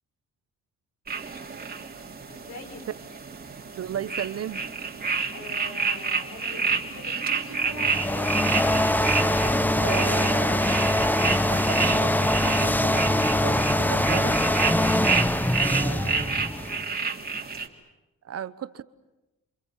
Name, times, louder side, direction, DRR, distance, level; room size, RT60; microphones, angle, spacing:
sound 1, 1.1-17.7, right 5 dB, 30° right, 3.2 m, -30 dB
voice 1, 2.3-2.8 5.3-9.9 15.5-16.2 16.7-17.2, left 2 dB, 65° left, 6 dB, 6.8 m, -43 dB
voice 2, 3.8-4.6 9.8-14.5 15.6-16.4 18.2-18.8, right 9 dB, 55° right, 14 dB, 1.2 m, -35 dB
sound 2, 7.7-16.8, left 1 dB, 5° left, 1.1 m, -23 dB
28.0 x 28.0 x 7.6 m, 1.0 s
cardioid pair, 90°, 30 cm